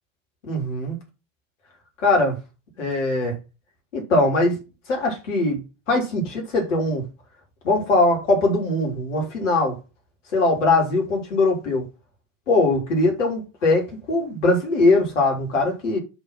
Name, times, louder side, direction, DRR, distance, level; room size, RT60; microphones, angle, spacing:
voice 1, 0.4-1.0 2.0-2.4 2.8-3.4 3.9-4.6 4.9-5.6 5.9-7.0 7.6-9.8 10.3-11.8 12.5-16.0, left 2 dB, 70° left, 3.9 m, -21 dB
8.1 x 4.7 x 5.9 m
figure-of-eight pair, 75°, 39 cm